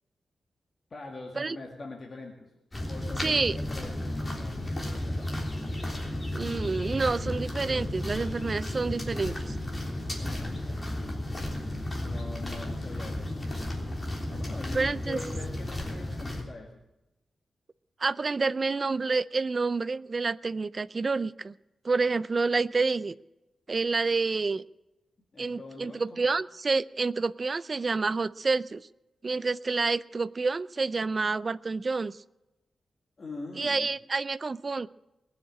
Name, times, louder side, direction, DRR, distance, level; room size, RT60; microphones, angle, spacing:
voice 1, 0.9-2.5 2.9-5.3 10.1-11.0 12.0-13.2 14.3-16.8 25.3-26.3 33.2-33.9, left 3 dB, 40° left, 0 dB, 2.0 m, -43 dB
sound 1, 2.7-16.4, left 1 dB, 20° left, 3.4 m, -33 dB
voice 2, 3.2-3.6 6.3-9.5 14.7-15.2 18.0-21.5 21.8-23.2 23.7-24.6 25.4-28.9 29.2-32.2 33.6-34.9, right 4 dB, 35° right, 17 dB, 0.4 m, -28 dB
20.5 x 7.3 x 8.8 m, 0.97 s
wide cardioid pair, 150°, 0 cm